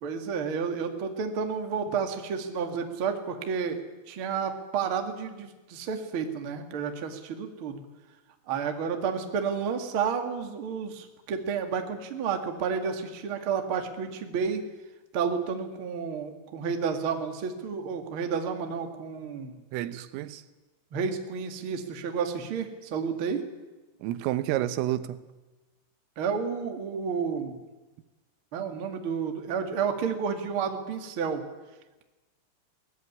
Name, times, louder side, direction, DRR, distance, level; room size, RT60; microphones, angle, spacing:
voice 1, 0.0-3.8 4.1-7.8 8.5-14.6 15.1-19.6 20.9-23.4 26.1-27.6 28.5-31.4, right 6 dB, 45° right, 1.8 m, -31 dB
voice 2, 19.7-20.4 24.0-25.2, right 14 dB, 85° right, 3.6 m, -30 dB
22.0 x 19.0 x 9.8 m
omnidirectional pair, 5.8 m